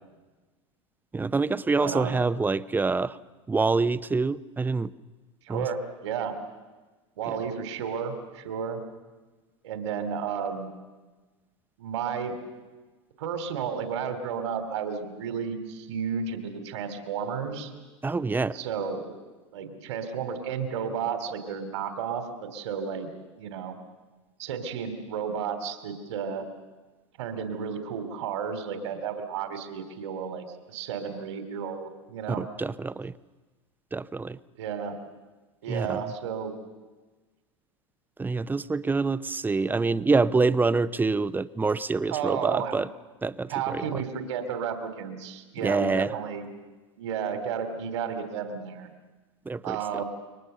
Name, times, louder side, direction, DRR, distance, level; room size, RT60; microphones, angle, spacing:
voice 1, 1.1-3.2 3.5-4.9 5.5-5.7 18.0-18.6 32.4-33.1 33.9-34.4 35.7-36.0 38.2-42.9 43.2-44.0 45.6-46.1 49.5-49.8, right 3 dB, 10° right, 16 dB, 0.8 m, -26 dB
voice 2, 1.8-2.2 5.4-6.3 7.2-8.8 9.6-10.7 11.8-12.3 13.2-17.7 18.5-19.1 19.5-23.1 23.4-23.8 24.4-26.4 27.2-32.4 34.5-35.0 35.6-36.5 42.1-42.7 43.5-46.5 47.0-48.9 49.6-50.0, right 7 dB, 70° right, 8 dB, 3.0 m, -32 dB
29.0 x 23.5 x 6.8 m, 1.3 s
hypercardioid pair, 90°, 16 cm